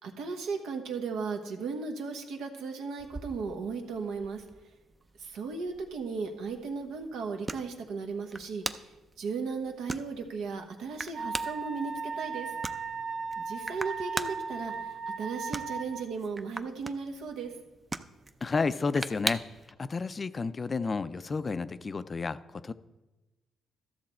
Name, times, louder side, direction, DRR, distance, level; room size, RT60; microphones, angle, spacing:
voice 1, 0.0-4.4 5.2-12.5 13.4-17.5, right 5 dB, 85° right, 4 dB, 1.1 m, -36 dB
sound 1, 3.0-19.7, right 3 dB, 25° right, 0.5 m, -42 dB
Wind instrument woodwind instrument, 11.1-16.0, right 5 dB, 40° right, 1.1 m, -36 dB
voice 2, 18.4-19.4 19.8-22.7, left 4 dB, 35° left, 13 dB, 0.4 m, -31 dB
13.0 x 6.6 x 4.3 m, 1.1 s
cardioid pair, 90°, 0 cm